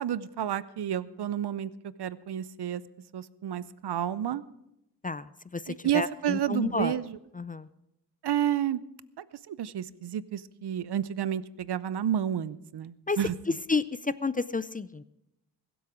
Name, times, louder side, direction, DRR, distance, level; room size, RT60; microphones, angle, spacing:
voice 1, 0.0-1.7 2.0-2.8 3.1-4.4 5.7-7.2 8.2-8.8 9.2-13.3, right 10 dB, 70° right, 18 dB, 0.7 m, -30 dB
voice 2, 5.0-7.0 7.3-7.7 13.1-13.2 13.7-15.0, left 4 dB, 20° left, 16 dB, 0.4 m, -31 dB
22.0 x 8.1 x 5.0 m, 0.86 s
cardioid pair, 65°, 42 cm